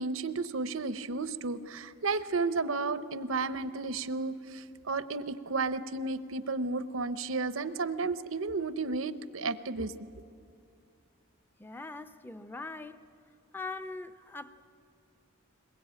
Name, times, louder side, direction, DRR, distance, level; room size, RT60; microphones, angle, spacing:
voice 1, 0.0-9.9, right 3 dB, 85° right, 0.9 m, -33 dB
voice 2, 11.6-13.1 13.5-14.5, left 3 dB, 10° left, 0.6 m, -41 dB
21.5 x 21.5 x 9.0 m
head